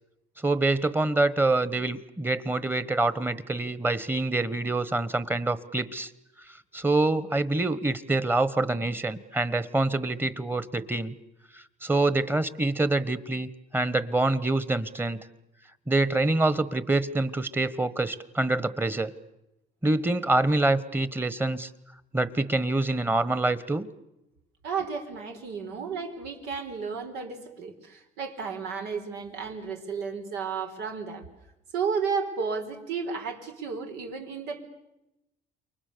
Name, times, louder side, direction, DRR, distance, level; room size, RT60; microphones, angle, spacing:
voice 1, 0.4-6.1 6.7-11.1 11.5-15.2 15.9-19.1 19.8-21.7 22.1-23.9, right 2 dB, 10° right, 16 dB, 1.3 m, -26 dB
voice 2, 24.6-31.3 31.7-34.7, right 5 dB, 90° right, 4 dB, 4.3 m, -33 dB
29.0 x 23.5 x 6.9 m, 0.91 s
cardioid pair, 110°, 17 cm